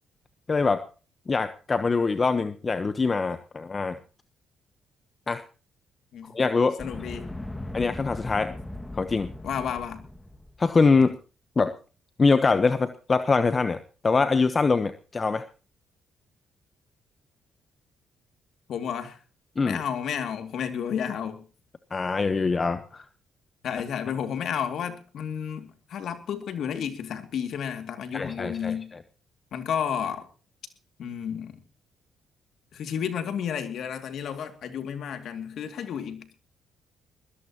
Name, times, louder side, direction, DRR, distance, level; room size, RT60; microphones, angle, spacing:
voice 1, 0.5-0.8 1.3-4.0 5.3-5.4 6.3-6.8 7.7-8.6 8.9-9.3 10.6-11.2 11.6-11.7 12.2-13.8 14.0-15.5 19.6-19.8 21.9-23.0 28.1-28.7, left 4 dB, 35° left, 1.0 m, -23 dB
voice 2, 6.8-7.3 9.4-10.1 18.7-19.2 19.6-21.4 23.6-28.9 29.5-30.3 31.0-31.6 32.7-36.3, left 8 dB, 65° left, 2.4 m, -32 dB
sound 1, 6.8-10.7, left 1 dB, 15° left, 2.0 m, -38 dB
21.0 x 17.0 x 3.0 m
supercardioid pair, 60°, 0 cm